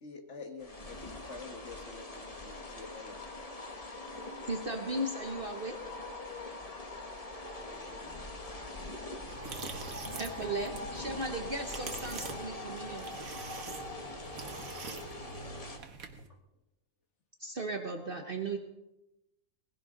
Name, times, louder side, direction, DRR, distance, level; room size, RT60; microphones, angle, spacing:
voice 1, 0.0-3.5, left 4 dB, 55° left, 5 dB, 1.9 m, -48 dB
sound 1, 0.6-15.8, left 2 dB, 25° left, 1.4 m, -43 dB
voice 2, 4.5-5.8 10.2-13.1 17.4-18.6, right 2 dB, 45° right, 4 dB, 1.2 m, -36 dB
voice 3, 7.6-8.3 15.2-15.6 18.0-18.6, left 3 dB, 70° left, 0 dB, 2.8 m, -59 dB
sound 2, 9.3-16.3, right 4 dB, 80° right, 1.8 m, -45 dB
19.5 x 16.0 x 3.9 m, 0.92 s
omnidirectional pair, 1.5 m